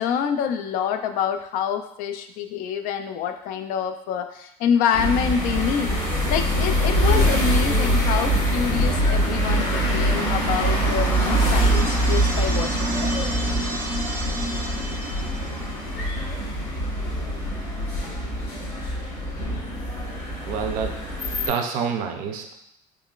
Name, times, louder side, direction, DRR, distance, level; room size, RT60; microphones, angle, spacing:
voice 1, 0.0-6.0 6.3-13.2, left 7 dB, 65° left, 7 dB, 0.4 m, -26 dB
sound 1, 4.9-21.5, equal, 45° left, 1.3 m, -23 dB
sound 2, 10.5-15.9, right 1 dB, 15° right, 0.4 m, -33 dB
voice 2, 20.5-21.0 21.5-22.5, right 6 dB, 70° right, 4 dB, 0.5 m, -27 dB
3.9 x 3.0 x 2.4 m, 0.77 s
cardioid pair, 150°, 15 cm